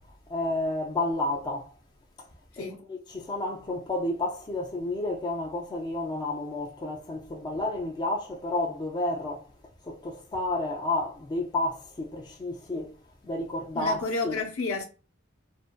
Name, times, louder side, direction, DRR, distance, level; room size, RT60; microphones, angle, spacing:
voice 1, 0.3-1.7 2.6-9.5 9.8-13.0 13.2-14.4, left 2 dB, 20° left, 0.3 m, -31 dB
voice 2, 2.5-3.0 13.7-14.8, left 3 dB, 70° left, 0.8 m, -31 dB
2.5 x 2.2 x 2.3 m
head